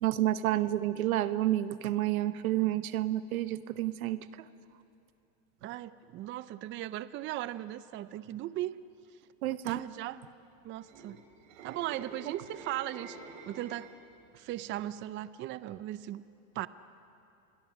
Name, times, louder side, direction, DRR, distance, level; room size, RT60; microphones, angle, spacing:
voice 1, 0.0-4.2 9.4-9.8, right 14 dB, 90° right, 13 dB, 1.1 m, -29 dB
voice 2, 5.6-8.7 9.5-10.2 10.6-11.2 11.6-13.2 13.5-13.9 14.3-16.2 16.6-16.7, right 14 dB, 30° right, 16 dB, 0.5 m, -37 dB
sound 1, 10.7-14.1 14.5-14.8, right 3 dB, 70° right, 3.7 m, -48 dB
29.0 x 22.0 x 6.2 m, 2.7 s
supercardioid pair, 130°, 42 cm